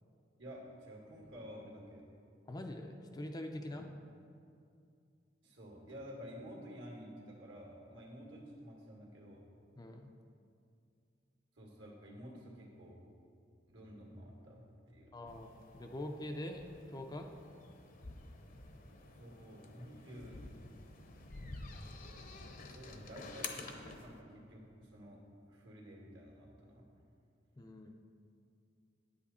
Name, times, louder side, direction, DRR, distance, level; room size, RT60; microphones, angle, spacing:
voice 1, 0.4-2.0 3.7-3.8 5.4-9.4 11.6-13.0 13.7-15.1 19.2-20.4 22.6-25.2 25.5-26.8, equal, 70° right, -1 dB, 2.1 m, -51 dB
voice 2, 2.5-3.9 9.8-10.1 15.1-17.3 27.6-28.0, left 1 dB, 20° left, 4 dB, 0.5 m, -44 dB
sound 1, 15.3-24.1, left 3 dB, 45° left, 0.8 m, -50 dB
9.6 x 8.4 x 4.2 m, 2.4 s
head